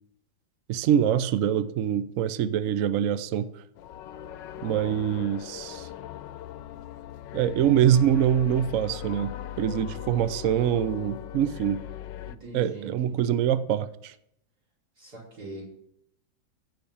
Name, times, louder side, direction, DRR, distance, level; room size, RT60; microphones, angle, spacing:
voice 1, 0.7-3.5 4.6-5.9 7.3-11.8 12.5-14.1, right 10 dB, 75° right, 0.7 m, -24 dB
sound 1, 3.7-12.3, left 11 dB, 75° left, 1.2 m, -39 dB
voice 2, 12.3-13.4 15.0-15.7, right 2 dB, 50° right, 5.4 m, -42 dB
14.5 x 6.0 x 8.5 m
omnidirectional pair, 2.1 m